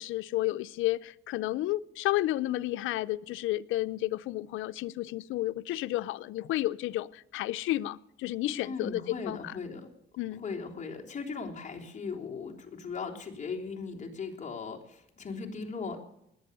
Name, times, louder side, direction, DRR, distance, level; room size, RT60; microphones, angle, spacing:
voice 1, 0.0-9.5 10.2-10.4, left 16 dB, 85° left, 0.6 m, -31 dB
voice 2, 8.6-9.9 10.3-16.0, left 4 dB, 40° left, 3.4 m, -38 dB
20.5 x 8.5 x 6.7 m
cardioid pair, 90°, 20 cm